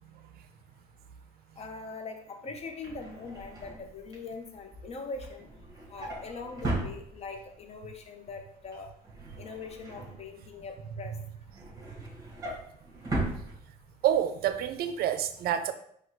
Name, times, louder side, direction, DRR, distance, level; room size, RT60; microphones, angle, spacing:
voice 1, 1.6-5.5 5.9-8.9 9.4-11.1, left 4 dB, 40° left, 4 dB, 0.8 m, -42 dB
Drawer open or close, 2.7-7.6 8.0-8.3 8.5-10.8 11.2-14.2 14.5-14.7 15.0-15.1, right 2 dB, 20° right, 1.6 m, -38 dB
voice 2, 14.0-15.7, right 10 dB, 65° right, 11 dB, 0.4 m, -28 dB
4.4 x 2.3 x 4.5 m, 0.68 s
cardioid pair, 110°, 17 cm